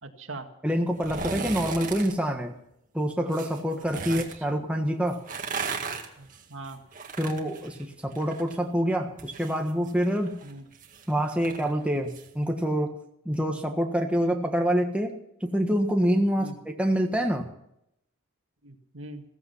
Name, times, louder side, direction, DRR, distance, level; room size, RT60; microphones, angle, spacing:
voice 1, 0.0-0.5 4.1-4.2 6.2-6.8 10.4-10.6 16.4-16.5 18.6-19.2, right 2 dB, 70° right, 5 dB, 1.9 m, -40 dB
voice 2, 0.6-2.6 2.9-5.2 7.2-10.3 11.1-13.0 13.2-17.5, equal, 5° right, 2 dB, 1.5 m, -26 dB
sound 1, 0.9-2.1 3.3-4.4 5.1-8.6 8.9-12.3 12.6-12.7, right 4 dB, 40° right, 2.0 m, -36 dB
15.5 x 15.0 x 5.7 m, 0.77 s
head